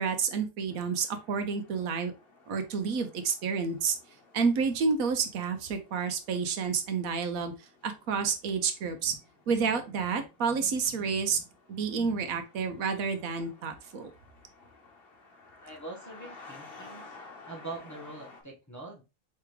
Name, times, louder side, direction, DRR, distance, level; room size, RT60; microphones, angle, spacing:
voice 1, 0.0-2.1 2.5-4.0 4.3-9.2 9.5-11.4 11.7-14.1, right 5 dB, 75° right, 7 dB, 1.1 m, -30 dB
sound 1, 0.7-18.4, left 3 dB, 45° left, 1.2 m, -54 dB
voice 2, 15.6-17.1 17.4-19.0, right 2 dB, 15° left, -2 dB, 0.9 m, -43 dB
4.7 x 3.4 x 3.1 m, 0.28 s
omnidirectional pair, 1.5 m